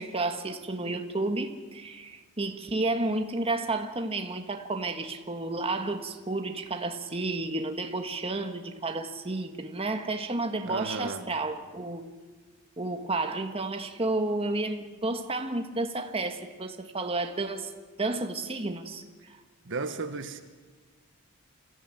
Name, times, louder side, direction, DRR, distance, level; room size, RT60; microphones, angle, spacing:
voice 1, 0.0-12.1 12.8-17.7 18.0-19.4, right 2 dB, 25° right, 5 dB, 1.6 m, -31 dB
voice 2, 10.6-11.3 19.6-20.4, right 3 dB, 55° right, 8 dB, 1.5 m, -34 dB
27.0 x 15.5 x 9.1 m, 1.4 s
head